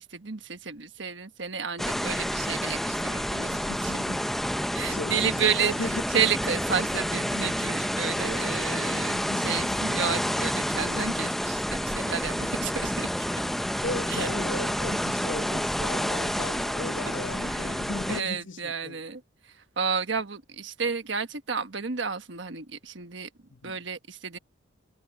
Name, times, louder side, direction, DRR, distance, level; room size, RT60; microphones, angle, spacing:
voice 1, 0.0-3.6 4.7-5.7 6.1-9.2 9.4-13.3 14.1-14.3 17.5-17.7 18.1-19.2 19.8-23.3 23.6-24.4, right 6 dB, 65° right, 1.4 m, -31 dB
sound 1, 1.8-18.2, equal, ahead, 0.5 m, -29 dB
voice 2, 3.5-4.3 4.9-6.0 8.7-9.8 13.8-19.0 23.5-23.8, left 3 dB, 75° left, 1.1 m, -37 dB
head